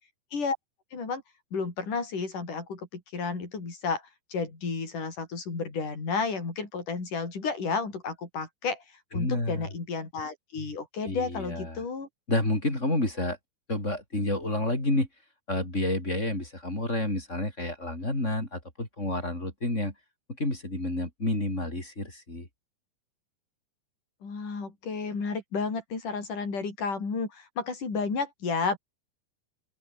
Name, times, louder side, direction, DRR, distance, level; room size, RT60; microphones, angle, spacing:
voice 1, 1.5-4.0 4.3-8.8 9.1-12.1 24.2-28.8, left 4 dB, 45° left, 8.1 m, -32 dB
voice 2, 9.1-9.7 11.1-11.8 12.3-13.4 13.7-15.1 15.5-19.9 20.4-22.5, left 2 dB, 15° left, 5.3 m, -29 dB
open air
omnidirectional pair, 5.2 m